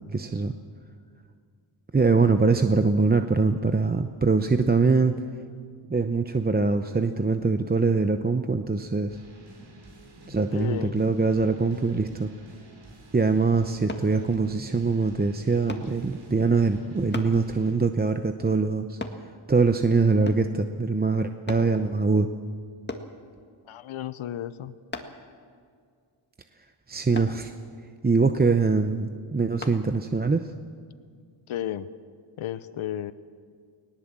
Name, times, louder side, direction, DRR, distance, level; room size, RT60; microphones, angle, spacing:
voice 1, 0.1-0.5 1.9-5.2 5.9-9.2 10.3-12.3 13.1-19.0 19.5-22.3 26.9-27.5 28.0-30.5, right 4 dB, 20° right, 8 dB, 0.8 m, -23 dB
sound 1, 9.1-17.7, equal, 65° right, 4.8 m, -48 dB
voice 2, 10.5-11.0 23.7-24.7 31.5-31.9 32.4-33.1, left 11 dB, 80° left, 14 dB, 0.8 m, -33 dB
sound 2, 13.9-14.1 15.7-15.9 17.1-17.4 19.0-19.2 20.2-20.5 21.5-21.7 22.9-23.1 24.9-25.2 27.1-27.4 29.6-29.8 30.4-30.5, left 2 dB, 20° left, 1.9 m, -36 dB
19.5 x 18.5 x 7.5 m, 2.1 s
cardioid pair, 80°, 48 cm